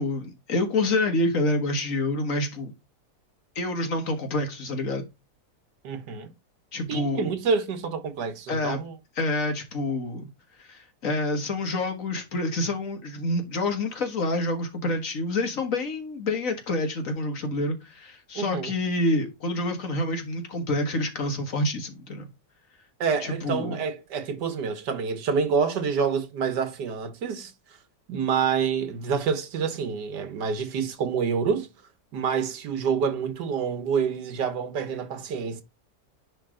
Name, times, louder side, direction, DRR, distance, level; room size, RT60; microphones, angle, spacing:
voice 1, 0.0-2.7 3.6-5.0 6.7-7.3 8.5-8.8 9.2-10.3 10.6-22.3 23.2-23.8, left 2 dB, 55° left, 1.7 m, -27 dB
voice 2, 5.8-6.3 6.9-8.9 18.4-18.7 23.0-27.5 28.1-31.7 32.1-35.6, right 6 dB, 85° right, 1.7 m, -27 dB
9.8 x 3.3 x 3.7 m
omnidirectional pair, 1.8 m